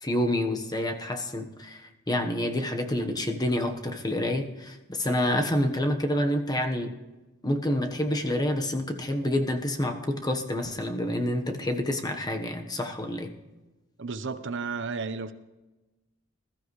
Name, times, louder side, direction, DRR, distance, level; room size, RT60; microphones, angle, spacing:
voice 1, 0.0-6.9 7.4-13.3, left 1 dB, 20° left, 1.3 m, -28 dB
voice 2, 14.0-15.3, right 4 dB, 60° right, 1.0 m, -33 dB
21.0 x 13.5 x 3.3 m
head